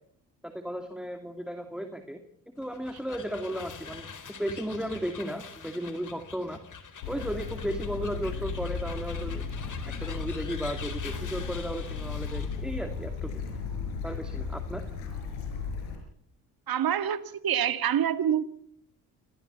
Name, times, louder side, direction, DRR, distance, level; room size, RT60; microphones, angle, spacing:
voice 1, 0.4-2.2 2.6-6.6 7.1-9.4 9.9-13.5 14.0-14.8, equal, ahead, 2.6 m, -35 dB
sound 1, 2.6-12.7, left 6 dB, 50° left, 4.0 m, -45 dB
Bird / Stream, 7.0-16.0, left 5 dB, 90° left, 5.1 m, -35 dB
voice 2, 16.7-18.4, right 9 dB, 60° right, 2.0 m, -26 dB
26.0 x 18.5 x 7.0 m
hypercardioid pair, 50°, 40 cm